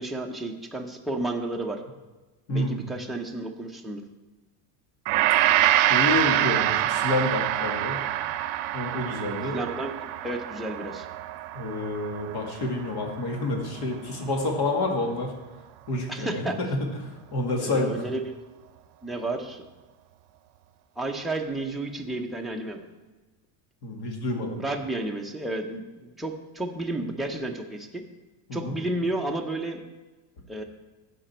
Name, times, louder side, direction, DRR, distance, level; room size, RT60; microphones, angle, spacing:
voice 1, 0.0-1.8 2.5-4.0 9.5-9.9 10.2-11.1 16.1-16.6 17.6-18.3 19.0-19.6 21.0-22.8 24.6-28.0 28.5-29.8 30.5-30.6, right 2 dB, ahead, 0 dB, 0.6 m, -31 dB
voice 2, 2.5-2.8 5.6-8.0 8.7-9.6 11.5-15.3 15.9-16.9 17.3-18.0 23.8-24.6 28.5-28.7, left 2 dB, 55° left, 1 dB, 2.2 m, -28 dB
Gong, 5.1-13.5 13.8-14.0, right 13 dB, 70° right, 0.7 m, -26 dB
15.5 x 5.2 x 4.4 m, 1.2 s
cardioid pair, 145°, 48 cm